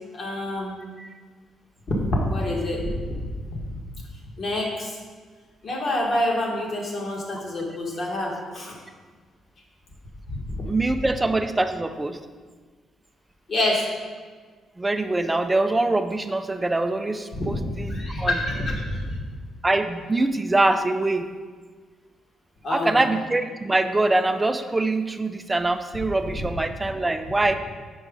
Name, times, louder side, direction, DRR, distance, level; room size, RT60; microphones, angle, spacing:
voice 1, 0.1-0.8 1.9-3.6 4.4-5.0 5.6-8.7 10.3-10.7 13.5-13.9 17.3-19.3 22.6-23.0 26.3-26.4, left 1 dB, 50° left, -2 dB, 1.5 m, -27 dB
voice 2, 10.7-12.2 14.8-18.4 19.6-21.3 22.7-27.5, right 2 dB, 15° right, 9 dB, 0.4 m, -24 dB
5.5 x 4.6 x 5.2 m, 1.5 s
cardioid pair, 90°, 0 cm